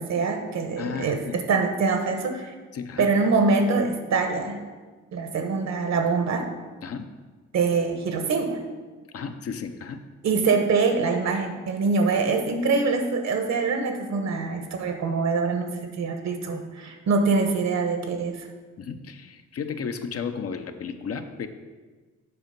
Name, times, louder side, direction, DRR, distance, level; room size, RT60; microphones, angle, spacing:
voice 1, 0.0-2.5 3.0-4.6 5.1-6.5 7.5-8.6 10.2-18.5, right 4 dB, 65° right, 6 dB, 1.2 m, -24 dB
voice 2, 0.8-1.4 2.7-3.1 6.8-7.1 9.1-10.0 18.8-21.5, left 6 dB, 50° left, 8 dB, 0.7 m, -33 dB
8.5 x 5.1 x 5.3 m, 1.4 s
cardioid pair, 90°, 30 cm